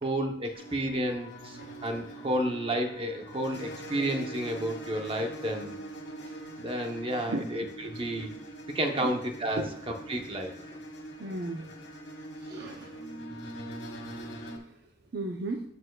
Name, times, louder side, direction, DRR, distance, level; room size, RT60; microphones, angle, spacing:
voice 1, 0.0-5.8 6.6-8.3 8.7-10.5 12.5-12.7, right 1 dB, 30° right, 3 dB, 0.8 m, -31 dB
sound 1, 0.5-14.6, right 1 dB, 70° left, 2.1 m, -43 dB
voice 2, 11.2-11.7 12.4-13.1 13.9-14.0 15.1-15.6, right 2 dB, 55° right, 2 dB, 0.6 m, -35 dB
13.0 x 6.8 x 2.3 m, 0.68 s
head